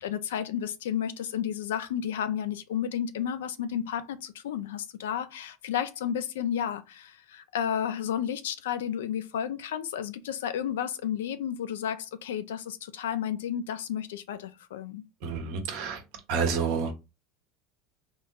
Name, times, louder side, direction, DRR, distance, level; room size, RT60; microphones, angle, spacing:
voice 1, 0.0-15.0, left 9 dB, 85° left, 0.4 m, -32 dB
voice 2, 15.2-16.0 16.3-16.9, right 6 dB, 70° right, 1.0 m, -29 dB
3.6 x 2.6 x 2.3 m
hypercardioid pair, 90°, 0 cm